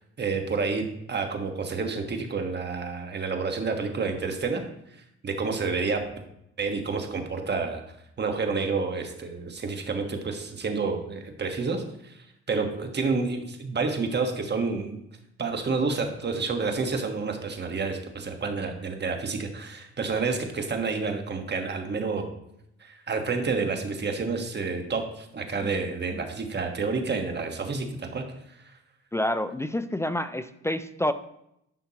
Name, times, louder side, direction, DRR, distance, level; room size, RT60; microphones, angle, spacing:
voice 1, 0.2-4.6 5.2-6.0 6.6-7.8 8.2-12.2 12.5-15.0 15.4-22.3 22.8-28.2 28.6-28.7, right 4 dB, 35° right, 4 dB, 1.3 m, -29 dB
voice 2, 29.1-31.1, left 1 dB, 10° left, 12 dB, 0.3 m, -28 dB
11.0 x 5.7 x 2.9 m, 0.78 s
cardioid pair, 90°, 30 cm